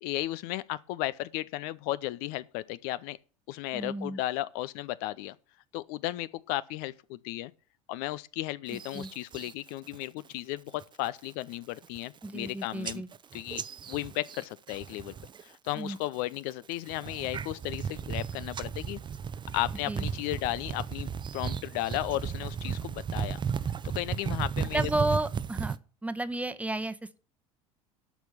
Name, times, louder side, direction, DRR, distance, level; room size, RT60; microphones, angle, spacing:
voice 1, 0.0-3.2 3.5-5.4 5.7-7.5 7.9-13.0 13.3-15.1 15.4-19.0 19.5-23.4 23.8-24.9, left 16 dB, 60° left, 0.6 m, -34 dB
voice 2, 3.7-4.2 8.7-9.1 12.2-13.1 15.8-16.0 19.9-20.0 24.7-25.8 26.0-27.2, right 2 dB, 10° right, 1.0 m, -32 dB
sound 1, 8.7-9.5 9.9-10.3 10.7-11.1 11.5-11.6 11.8-12.5 12.8-15.4 15.7-16.2 16.7-25.8, right 7 dB, 25° right, 0.7 m, -35 dB
11.5 x 6.1 x 7.0 m
figure-of-eight pair, 70°, 17 cm